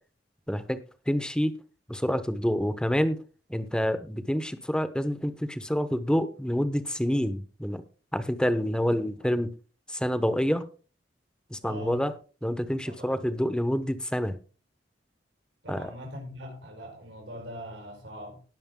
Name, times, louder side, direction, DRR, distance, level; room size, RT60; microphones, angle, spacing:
voice 1, 0.5-0.8 1.1-1.5 1.9-3.2 3.5-7.8 8.1-9.5 9.9-10.7 11.5-12.1 12.4-14.4 15.7-15.9, equal, 5° left, 1.0 m, -27 dB
voice 2, 11.6-12.0 12.8-13.2 15.6-18.4, left 1 dB, 85° right, 4.9 m, -42 dB
18.5 x 6.4 x 3.8 m
head